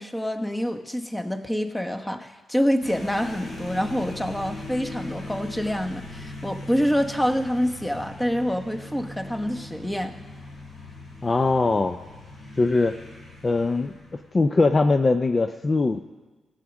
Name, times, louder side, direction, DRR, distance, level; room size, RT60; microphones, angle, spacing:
voice 1, 0.0-10.1, equal, 10° left, 5 dB, 1.1 m, -26 dB
sound 1, 2.8-14.5, left 2 dB, 70° left, 3.0 m, -40 dB
voice 2, 11.2-12.0 12.6-12.9 13.4-13.9 14.3-16.0, left 3 dB, 40° left, 8 dB, 0.5 m, -21 dB
15.5 x 6.5 x 6.1 m, 1.2 s
supercardioid pair, 55°, 0 cm